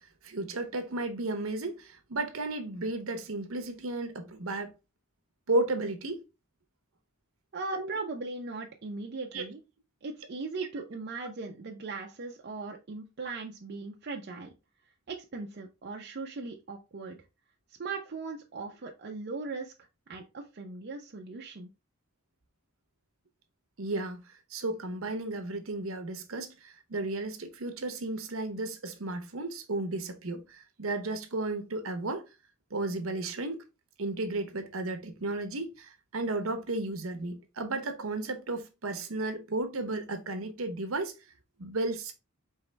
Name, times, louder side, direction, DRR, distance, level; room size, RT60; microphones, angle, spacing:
voice 1, 0.2-4.7 5.5-6.2 7.8-7.9 9.3-9.4 23.8-24.2 24.5-32.2 32.7-33.6 34.0-41.1 41.6-42.1, right 2 dB, 70° right, 0.9 m, -33 dB
voice 2, 7.5-9.6 10.0-14.5 15.1-17.2 17.8-19.7 20.1-21.7, right 3 dB, 50° right, 0.6 m, -38 dB
4.7 x 3.0 x 3.2 m
head